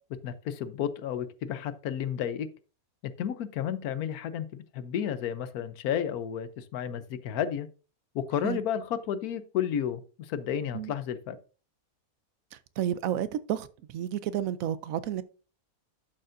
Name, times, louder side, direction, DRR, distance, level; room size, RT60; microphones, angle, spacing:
voice 1, 0.1-2.5 3.0-7.7 8.1-11.4, left 9 dB, 85° left, 1.2 m, -32 dB
voice 2, 12.5-15.2, right 10 dB, 70° right, 1.0 m, -31 dB
11.5 x 6.6 x 2.6 m
omnidirectional pair, 1.5 m